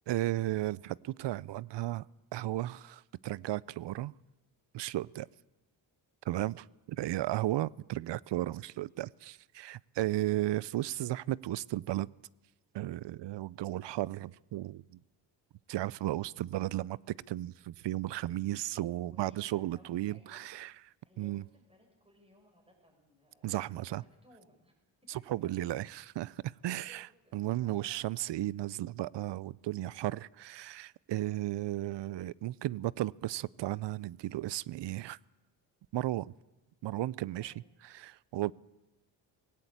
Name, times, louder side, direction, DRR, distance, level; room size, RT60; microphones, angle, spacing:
voice 1, 0.1-2.1 2.3-4.1 4.7-5.3 6.2-12.1 12.7-15.0 15.7-20.7 21.2-21.4 23.4-24.0 25.1-27.1 27.3-35.2 35.9-36.3 36.8-37.5 37.9-38.5, right 15 dB, 65° right, 0.6 m, -34 dB
voice 2, 18.8-24.7 25.1-25.2 26.6-28.5 31.1-31.4 37.4-37.7, equal, 10° right, 6.5 m, -63 dB
18.0 x 17.5 x 8.7 m
cardioid pair, 65°, 47 cm